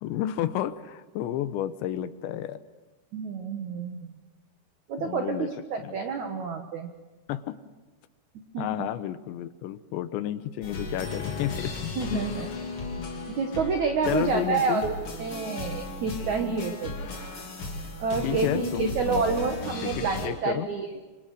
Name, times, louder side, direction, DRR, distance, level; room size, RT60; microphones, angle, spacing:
voice 1, 0.0-2.6 5.0-5.5 5.8-6.0 7.3-7.6 8.6-12.3 13.0-13.1 14.1-14.9 16.2-16.7 18.2-19.5 19.8-20.7, left 12 dB, 80° left, 12 dB, 3.2 m, -31 dB
voice 2, 3.1-4.2 4.9-6.9 8.5-8.9 12.0-12.5 13.4-14.9 15.2-16.9 18.0-20.9, right 5 dB, 65° right, 5 dB, 1.9 m, -29 dB
sound 1, 10.6-20.3, left 3 dB, 35° left, 3.1 m, -35 dB
26.0 x 25.5 x 6.5 m, 1.2 s
omnidirectional pair, 5.4 m